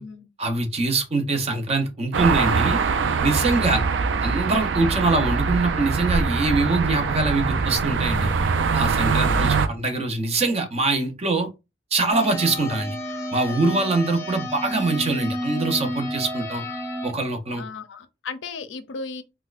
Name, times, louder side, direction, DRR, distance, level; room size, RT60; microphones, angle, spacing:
voice 1, 0.4-2.8 3.2-3.8 4.2-8.3 8.7-11.5 11.9-13.0 13.3-16.6 17.0-17.6, right 3 dB, 35° right, 0.7 m, -23 dB
sound 1, 2.1-9.7, right 5 dB, 80° right, 0.4 m, -23 dB
voice 2, 9.1-9.6 17.6-19.2, left 4 dB, 85° left, 0.5 m, -36 dB
sound 2, 12.1-17.1, equal, 15° left, 0.5 m, -31 dB
4.2 x 2.3 x 2.4 m
head